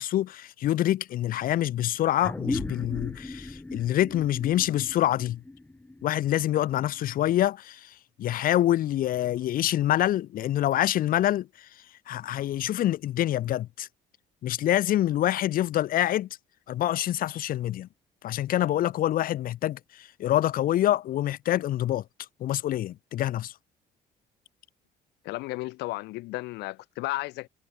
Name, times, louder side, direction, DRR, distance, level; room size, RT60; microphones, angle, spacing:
voice 1, 0.0-5.4 6.0-7.9 8.2-11.5 12.1-13.9 14.4-16.3 16.7-17.9 18.2-22.0 22.4-23.5, left 13 dB, 55° left, 0.6 m, -26 dB
sound 1, 2.2-7.1, left 2 dB, 10° left, 1.2 m, -37 dB
voice 2, 25.2-27.5, left 20 dB, 90° left, 1.8 m, -33 dB
cardioid pair, 110°, 17 cm